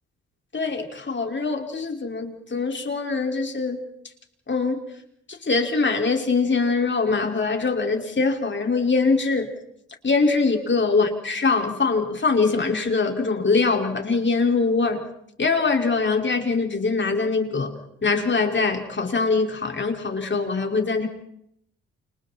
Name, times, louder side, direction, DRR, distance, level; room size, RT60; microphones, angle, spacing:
voice 1, 0.5-3.8 4.5-4.8 5.4-9.5 10.0-15.0 15.4-17.7 18.0-21.1, left 4 dB, 35° left, 3 dB, 5.6 m, -23 dB
29.5 x 27.0 x 4.6 m, 0.72 s
hypercardioid pair, 45°, 32 cm